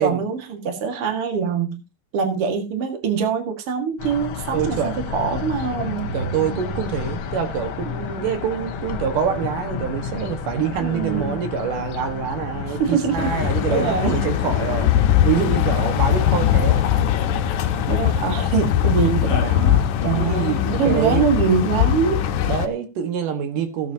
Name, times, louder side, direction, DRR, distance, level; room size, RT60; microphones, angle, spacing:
voice 1, 0.0-1.8 2.1-4.8 5.1-6.1 10.8-11.4 12.7-13.4 13.7-14.2 17.0-17.1 17.9-22.3, right 6 dB, 50° right, 2.7 m, -24 dB
sound 1, 4.0-21.0, left 5 dB, 65° left, 1.3 m, -31 dB
voice 2, 4.5-5.1 6.1-16.9 20.0-21.2 22.5-23.9, right 8 dB, 85° right, 3.2 m, -26 dB
sound 2, 13.2-22.7, left 10 dB, 80° left, 2.3 m, -21 dB
15.5 x 9.6 x 2.8 m
omnidirectional pair, 3.6 m